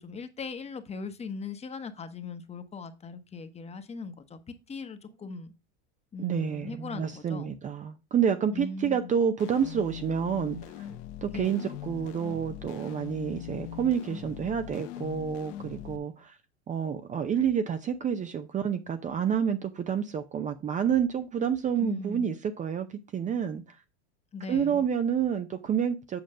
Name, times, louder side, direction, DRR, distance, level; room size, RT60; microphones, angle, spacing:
voice 1, 0.0-4.4 4.7-5.5 6.1-7.6 8.5-9.1 11.3-11.7 21.8-22.3 24.3-24.8, left 4 dB, 20° left, 1.1 m, -39 dB
voice 2, 6.2-10.6 11.2-16.4 16.7-23.8 24.5-26.2, right 8 dB, 20° right, 0.6 m, -29 dB
sound 1, 9.4-16.0, left 12 dB, 60° left, 1.2 m, -41 dB
7.9 x 5.1 x 5.1 m
supercardioid pair, 120°, 33 cm